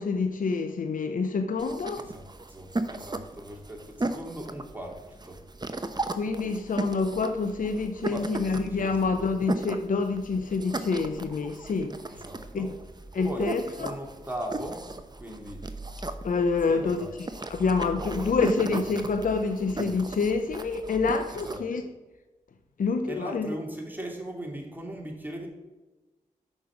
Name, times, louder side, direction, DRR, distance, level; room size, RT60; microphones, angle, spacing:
voice 1, 0.0-2.1 6.1-12.0 12.5-12.7 13.1-14.0 16.2-17.1 17.5-21.8 22.8-23.6, left 4 dB, 65° left, 0.6 m, -27 dB
sound 1, 1.6-21.6, right 2 dB, 30° right, 0.8 m, -37 dB
voice 2, 2.0-5.4 8.1-9.2 12.1-12.7 13.2-13.5 13.8-14.9 15.2-15.7 16.7-17.1 18.0-18.4 21.3-21.6 23.1-25.5, right 1 dB, 10° right, 2.5 m, -39 dB
6.3 x 5.4 x 6.0 m
cardioid pair, 40°, 15 cm